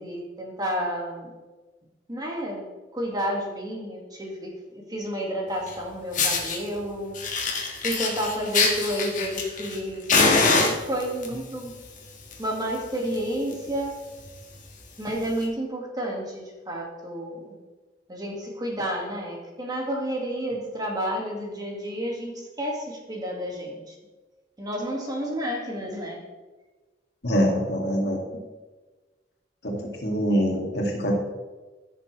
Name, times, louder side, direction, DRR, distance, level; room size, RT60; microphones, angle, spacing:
voice 1, 0.0-1.3 2.1-2.7 2.9-7.5 7.8-10.2 10.5-11.7 12.4-14.0 15.0-17.5 18.1-24.0 24.6-26.2, equal, 20° right, -1 dB, 1.9 m, -31 dB
Fire, 5.7-5.8 6.1-6.6 7.1-9.8 10.1-11.3 12.1-12.3 12.6-12.7 13.1-13.2 13.5-13.7 14.3-14.4 15.3-15.4, left 3 dB, 45° left, 1.7 m, -23 dB
voice 2, 27.2-28.2 29.6-31.1, equal, 65° left, -1 dB, 2.3 m, -24 dB
15.0 x 6.8 x 3.3 m, 1.2 s
head